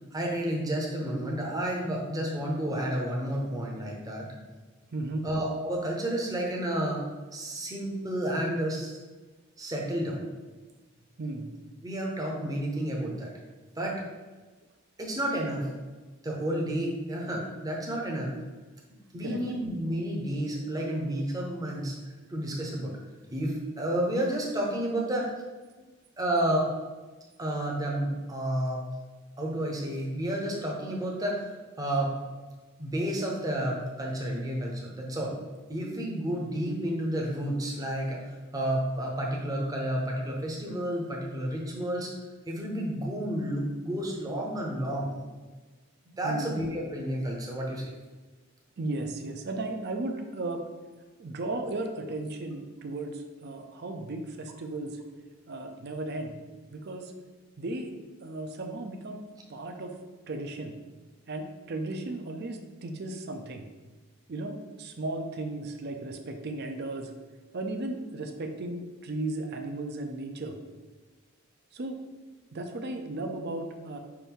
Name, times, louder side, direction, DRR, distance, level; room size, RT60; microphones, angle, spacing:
voice 1, 0.1-4.3 5.2-7.0 7.3-9.0 9.6-10.2 11.8-13.3 13.7-14.0 15.0-15.7 16.2-18.3 19.1-22.0 22.3-23.0 23.3-25.3 26.2-26.7 27.4-28.9 29.4-31.4 31.8-32.1 32.8-35.3 35.7-42.1 42.5-45.1 46.2-47.9, right 1 dB, 15° right, -1 dB, 0.7 m, -31 dB
voice 2, 4.9-5.3 11.2-11.5 19.2-19.4 46.2-46.5 48.8-50.6 51.2-55.0 55.5-56.4 56.7-57.1 57.6-57.9 58.2-59.2 59.5-60.0 60.3-60.8 61.3-63.7 64.3-67.1 67.5-70.6 71.7-72.0 72.5-74.0, right 2 dB, 50° right, 5 dB, 0.5 m, -35 dB
5.7 x 2.6 x 3.5 m, 1.3 s
head